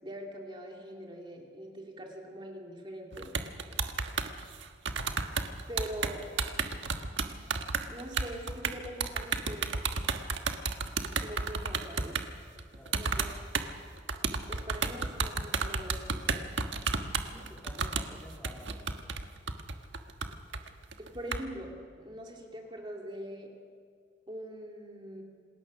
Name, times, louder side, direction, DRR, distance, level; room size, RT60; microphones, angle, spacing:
voice 1, 0.0-3.3 5.7-6.3 7.9-9.7 11.2-12.2 12.9-13.3 14.5-16.4 21.0-23.5 24.3-25.2, equal, 25° right, 0 dB, 2.6 m, -43 dB
sound 1, 3.1-12.3 12.6-13.7 14.0-21.4, right 4 dB, 85° right, 1.4 m, -32 dB
voice 2, 12.7-13.1 16.9-19.0, left 1 dB, 10° left, -1 dB, 2.4 m, -52 dB
28.0 x 20.0 x 6.3 m, 2.2 s
head